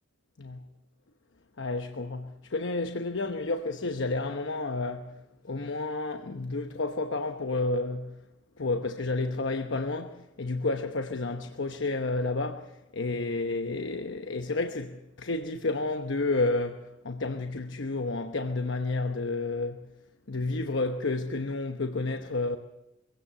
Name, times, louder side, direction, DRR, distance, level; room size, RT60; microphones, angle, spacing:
voice 1, 1.6-8.2 8.6-19.9 20.3-22.6, left 3 dB, 85° left, 1.0 m, -31 dB
24.0 x 17.0 x 6.9 m
head